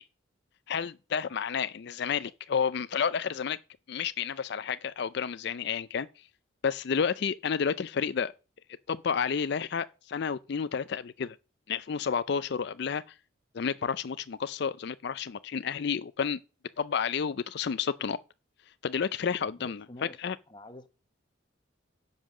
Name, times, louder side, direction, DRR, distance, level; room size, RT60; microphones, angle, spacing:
voice 1, 0.7-3.6 3.9-6.1 6.6-8.3 8.9-11.4 11.7-13.0 13.5-16.4 16.8-18.2 18.8-20.4, left 6 dB, 55° left, 0.4 m, -30 dB
voice 2, 19.6-20.9, left 1 dB, 25° left, 1.0 m, -48 dB
10.0 x 5.5 x 6.4 m
head